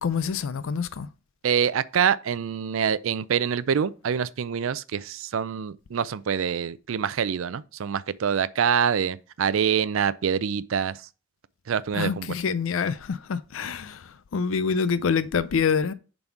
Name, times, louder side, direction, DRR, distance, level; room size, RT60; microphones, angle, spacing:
voice 1, 0.0-1.1 11.9-15.9, left 6 dB, 75° left, 0.4 m, -26 dB
voice 2, 1.4-11.0 11.7-12.3, right 7 dB, 75° right, 0.4 m, -25 dB
7.0 x 4.1 x 4.5 m
head